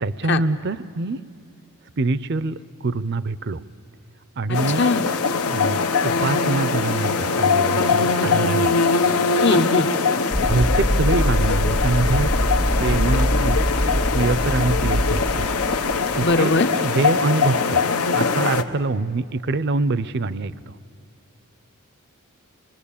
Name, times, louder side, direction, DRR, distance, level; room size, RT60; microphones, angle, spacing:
voice 1, 0.0-1.2 2.0-3.6 4.4-4.8 5.5-8.7 10.5-12.3 12.8-13.6 14.1-15.5 16.1-16.5 16.8-17.8 18.1-20.7, right 3 dB, 50° right, 16 dB, 0.5 m, -24 dB
sound 1, 4.5-18.6, left 4 dB, 90° left, 1.1 m, -22 dB
voice 2, 9.4-9.9 16.2-16.7, left 3 dB, 50° left, 9 dB, 0.9 m, -20 dB
sound 2, 10.3-16.4, equal, 5° left, 0.6 m, -23 dB
25.0 x 22.5 x 8.6 m, 2.4 s
head